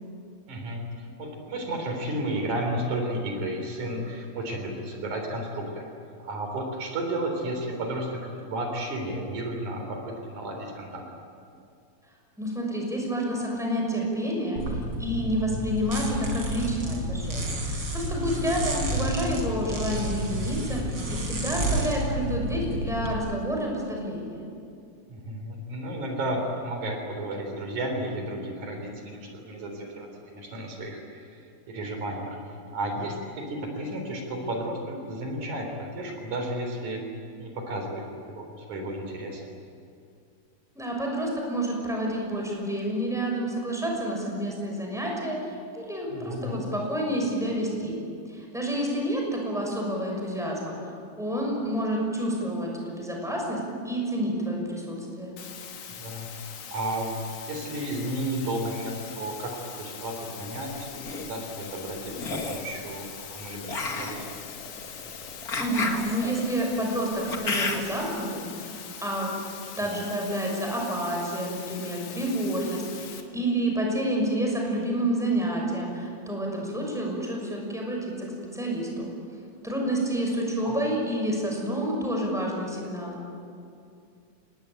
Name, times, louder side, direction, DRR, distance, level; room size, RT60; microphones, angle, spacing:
voice 1, 0.5-5.9 6.2-11.0 25.1-31.4 31.7-32.4 32.7-37.0 37.4-39.5 46.1-46.7 56.0-57.1 57.4-64.3 69.9-70.0 80.6-80.8, right 1 dB, 80° right, 3 dB, 5.1 m, -33 dB
voice 2, 12.4-24.4 40.7-48.0 48.3-53.6 53.8-55.3 65.6-69.3 69.7-79.1 79.6-83.2, right 1 dB, ahead, -1 dB, 6.1 m, -29 dB
sound 1, 14.6-23.1, right 1 dB, 40° right, 4.8 m, -30 dB
sound 2, 55.4-73.2, left 7 dB, 70° left, 3.0 m, -42 dB
sound 3, 60.8-61.2 62.1-62.7 63.7-68.1, left 3 dB, 35° left, 2.0 m, -32 dB
27.5 x 20.0 x 9.0 m, 2.5 s
omnidirectional pair, 3.4 m